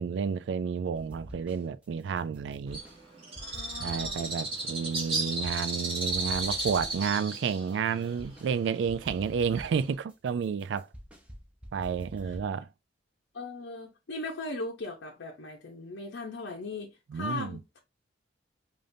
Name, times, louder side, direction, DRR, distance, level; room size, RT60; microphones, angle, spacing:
voice 1, 0.0-2.8 3.8-10.9 11.7-12.7 17.1-17.6, right 6 dB, 70° right, 0.3 m, -31 dB
sound 1, 0.9-1.8 2.2-3.0 3.4-5.8 6.1-8.5 8.9-12.5, equal, 5° right, 0.8 m, -47 dB
Bird, 2.7-9.9, right 2 dB, 30° right, 1.8 m, -35 dB
voice 2, 3.4-4.3 13.3-17.8, left 2 dB, 80° left, 0.7 m, -38 dB
5.1 x 2.6 x 2.6 m
head